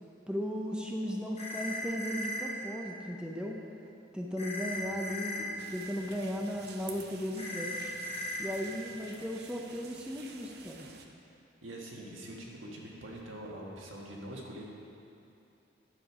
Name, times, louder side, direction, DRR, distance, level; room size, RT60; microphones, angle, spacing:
voice 1, 0.3-3.6 4.1-7.9 8.4-10.9, equal, 5° right, 0 dB, 0.5 m, -36 dB
sound 1, 1.4-2.4 4.4-5.4 7.4-8.4, left 1 dB, 30° left, 1.8 m, -37 dB
sound 2, 5.6-11.1, right 5 dB, 55° right, 0.6 m, -50 dB
voice 2, 11.6-14.6, right 1 dB, 85° right, -3 dB, 1.6 m, -44 dB
10.0 x 6.7 x 4.8 m, 2.7 s
head